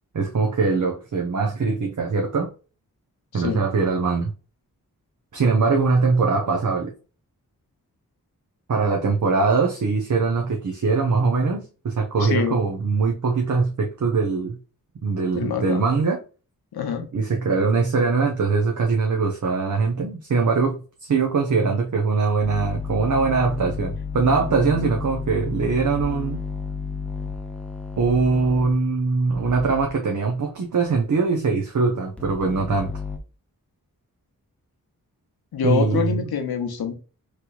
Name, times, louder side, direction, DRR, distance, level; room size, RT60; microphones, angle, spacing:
voice 1, 0.1-2.5 3.3-4.3 5.3-6.9 8.7-14.6 15.0-16.2 17.1-26.4 28.0-32.9 35.6-36.3, right 4 dB, 55° right, 1 dB, 0.7 m, -22 dB
voice 2, 3.3-3.7 12.2-12.6 15.3-15.8 16.7-17.0 35.5-36.9, left 7 dB, 85° left, 6 dB, 0.8 m, -25 dB
sound 1, 22.4-28.7 29.3-29.9 32.2-33.2, left 5 dB, 5° left, 0.7 m, -32 dB
3.2 x 3.0 x 2.3 m, 0.35 s
wide cardioid pair, 65°, 36 cm